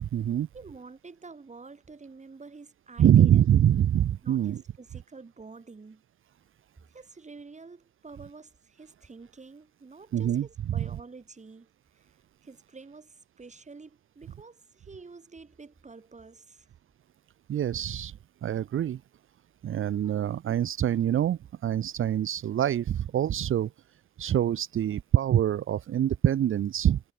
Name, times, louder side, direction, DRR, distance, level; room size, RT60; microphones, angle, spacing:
voice 1, 0.0-0.5 3.0-4.6 10.1-10.9 17.5-18.1 18.4-19.0 19.6-23.7 24.2-27.0, right 10 dB, 75° right, 0.5 m, -25 dB
voice 2, 0.5-3.4 4.2-6.0 6.9-12.2 12.4-16.7, right 4 dB, 35° right, 2.4 m, -48 dB
wide cardioid pair, 115°, 21 cm